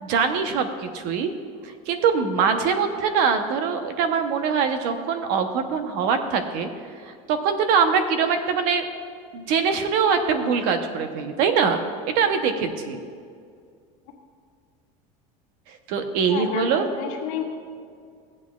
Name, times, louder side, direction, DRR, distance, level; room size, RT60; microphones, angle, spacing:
voice 1, 0.0-1.3 1.6-6.7 7.0-8.9 9.3-13.0 15.9-16.9, right 6 dB, 60° right, 7 dB, 0.9 m, -23 dB
voice 2, 16.3-17.4, left 8 dB, 85° left, 0 dB, 1.6 m, -31 dB
15.0 x 8.4 x 2.4 m, 2.2 s
cardioid pair, 160°, 17 cm